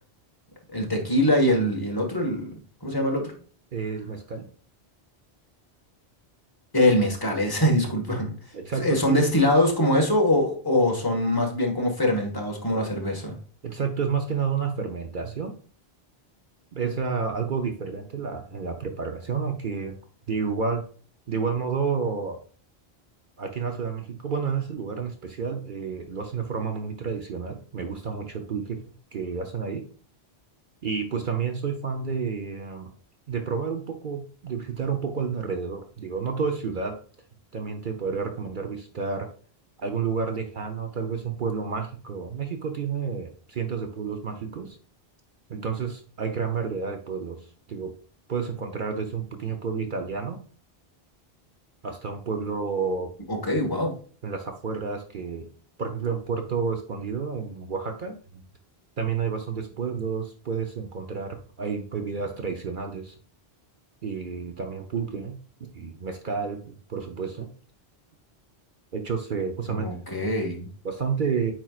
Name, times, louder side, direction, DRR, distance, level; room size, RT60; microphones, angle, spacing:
voice 1, 0.7-3.3 6.7-8.3 8.8-13.3 53.3-53.9 69.7-70.7, left 1 dB, 20° left, 1.5 m, -23 dB
voice 2, 3.7-4.5 8.5-9.2 13.6-15.5 16.7-20.0 20.3-20.8 21.3-22.4 23.4-28.8 29.1-29.8 30.8-32.9 33.3-37.0 37.5-39.3 39.8-44.8 45.5-47.4 47.7-47.9 48.3-50.4 51.8-53.1 54.2-55.5 55.8-58.4 59.0-63.1 64.0-67.5 68.9-69.9 70.8-71.5, right 5 dB, 55° right, 0.9 m, -30 dB
9.1 x 4.4 x 2.4 m
omnidirectional pair, 1.1 m